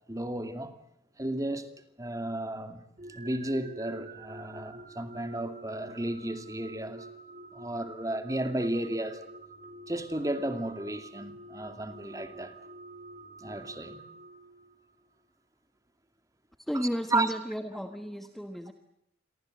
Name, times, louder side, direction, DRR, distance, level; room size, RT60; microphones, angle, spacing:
voice 1, 0.1-0.7 1.2-1.7 2.0-2.8 3.1-7.1 7.5-9.2 9.9-12.5 13.4-14.0 17.1-17.3, right 1 dB, 20° right, 2.4 m, -33 dB
sound 1, 3.0-15.0, right 2 dB, 40° right, 2.2 m, -48 dB
voice 2, 16.6-18.7, equal, ahead, 1.3 m, -33 dB
29.0 x 23.5 x 7.9 m
head